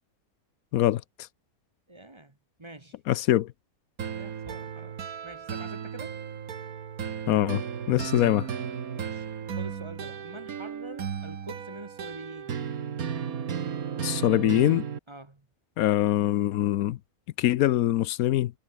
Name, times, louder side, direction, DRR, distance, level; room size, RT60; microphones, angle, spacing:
voice 1, 1.9-3.0 4.1-5.0 5.2-6.2 8.0-8.2 8.9-9.3 9.6-12.5 15.1-15.5, right 1 dB, 20° right, 1.4 m, -45 dB
voice 2, 3.1-3.5 7.3-7.6 7.9-8.5 14.0-14.8 15.8-17.0 17.4-18.5, left 13 dB, 80° left, 1.1 m, -23 dB
sound 1, 4.0-15.0, right 7 dB, 75° right, 1.9 m, -35 dB
omnidirectional pair, 1.5 m